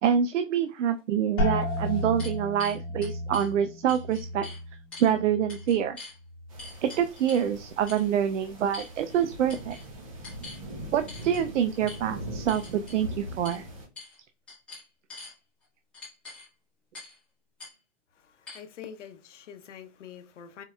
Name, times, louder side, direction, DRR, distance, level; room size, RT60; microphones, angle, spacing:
voice 1, 0.0-4.5 5.0-6.0 6.8-9.8 10.9-13.7, right 9 dB, 70° right, 0.5 m, -26 dB
sound 1, 1.0-1.1 1.6-3.5 3.9-4.6 4.9-5.1 5.5-6.2 6.6-7.5 7.9-8.1 8.7-9.2 9.5-9.8 10.2-10.6 11.1-11.4 11.9-12.0 12.5-13.0 13.4-13.6 14.0-14.2 14.5-15.3 15.9-16.5 16.9-17.2 17.6-17.7 18.5-18.6, left 3 dB, 5° left, 1.1 m, -44 dB
sound 2, 1.4-7.0 7.3-8.0 8.6-9.0, left 2 dB, 30° left, 1.5 m, -34 dB
sound 3, 6.5-13.9, equal, 25° right, 0.8 m, -41 dB
voice 2, 18.2-20.6, left 8 dB, 70° left, 0.8 m, -45 dB
4.6 x 3.1 x 2.3 m
hypercardioid pair, 180°, 38 cm